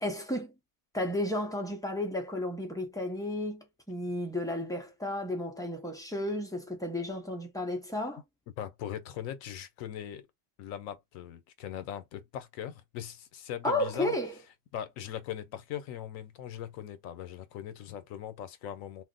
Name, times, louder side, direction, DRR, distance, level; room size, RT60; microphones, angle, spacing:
voice 1, 0.0-0.5 0.9-8.2 13.6-14.3, left 1 dB, 5° left, 0.3 m, -33 dB
voice 2, 8.6-10.2 10.6-14.2 14.7-19.0, left 10 dB, 90° left, 1.0 m, -40 dB
2.5 x 2.1 x 3.7 m
omnidirectional pair, 1.4 m